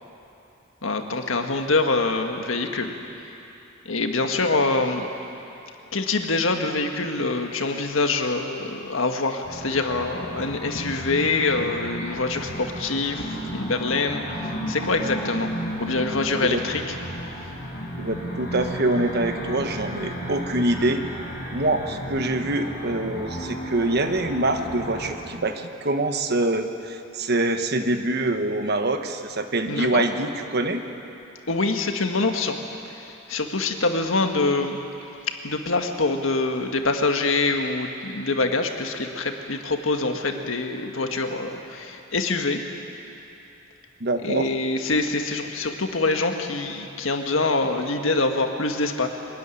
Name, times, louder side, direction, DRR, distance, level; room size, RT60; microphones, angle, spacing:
voice 1, 0.8-2.9 3.9-5.1 5.9-13.3 13.5-14.2 14.7-15.5 15.8-16.8 29.7-30.0 31.5-32.6 33.3-34.8 35.4-42.6 44.2-49.1, left 3 dB, 75° left, 4 dB, 1.7 m, -25 dB
sound 1, 9.4-25.1, equal, 45° left, 5.5 m, -33 dB
voice 2, 18.0-21.0 21.5-30.8 44.0-44.5, right 2 dB, 55° right, 7 dB, 1.2 m, -25 dB
23.0 x 13.0 x 9.9 m, 2.8 s
head